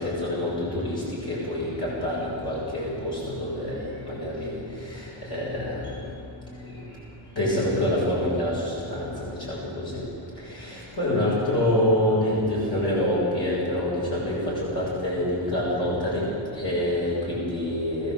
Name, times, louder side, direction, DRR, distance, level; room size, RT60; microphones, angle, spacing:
voice 1, 0.0-5.9 6.7-6.8 7.4-10.0 10.5-16.3 16.5-18.1, left 1 dB, 55° left, -7 dB, 7.4 m, -26 dB
22.5 x 16.0 x 7.8 m, 2.5 s
wide cardioid pair, 90°, 48 cm